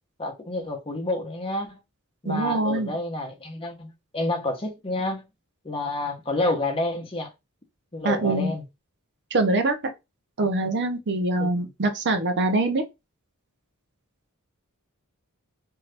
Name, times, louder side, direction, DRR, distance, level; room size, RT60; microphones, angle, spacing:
voice 1, 0.2-1.8 2.2-5.3 5.6-7.3 7.9-8.6 10.4-10.5 11.4-11.7, left 2 dB, 25° left, 0.8 m, -29 dB
voice 2, 2.3-2.9 8.0-8.5 9.3-9.8 10.4-12.8, right 2 dB, 50° right, 0.7 m, -24 dB
2.7 x 2.4 x 3.3 m
head